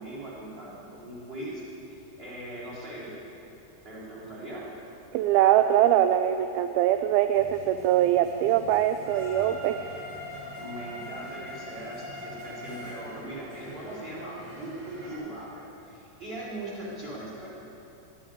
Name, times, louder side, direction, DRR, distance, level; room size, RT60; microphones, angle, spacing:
voice 1, 0.0-3.2 3.8-4.8 10.6-17.5, right 1 dB, 15° right, -7 dB, 3.6 m, -40 dB
voice 2, 5.1-9.8, right 12 dB, 85° right, 9 dB, 2.2 m, -22 dB
sound 1, 7.3-15.1, equal, 55° right, 4.9 m, -42 dB
12.5 x 9.9 x 9.8 m, 2.9 s
omnidirectional pair, 4.8 m